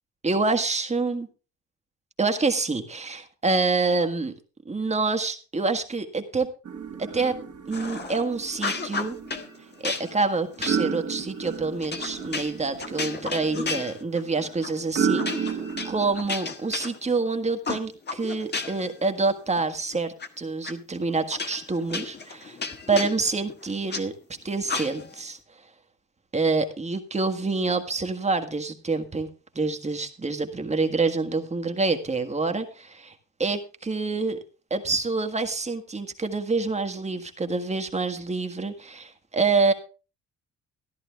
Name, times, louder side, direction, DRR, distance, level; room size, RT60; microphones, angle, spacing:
voice 1, 0.2-1.3 2.2-4.3 4.6-6.5 7.0-7.3 7.7-9.2 9.8-22.6 22.9-24.1 24.4-25.4 26.3-29.3 29.5-34.4 34.7-39.7, right 3 dB, 20° right, 7 dB, 1.6 m, -27 dB
sound 1, 6.7-16.2, right 6 dB, 50° right, 1.9 m, -32 dB
sound 2, 7.7-8.2 8.5-9.5 9.8-14.3 14.6-14.8 15.2-17.3 17.6-18.9 19.3-20.3 20.6-20.7 21.3-24.0 24.7-25.2, left 4 dB, 35° left, 1.5 m, -33 dB
13.5 x 11.0 x 3.4 m, 0.34 s
cardioid pair, 90°, 30 cm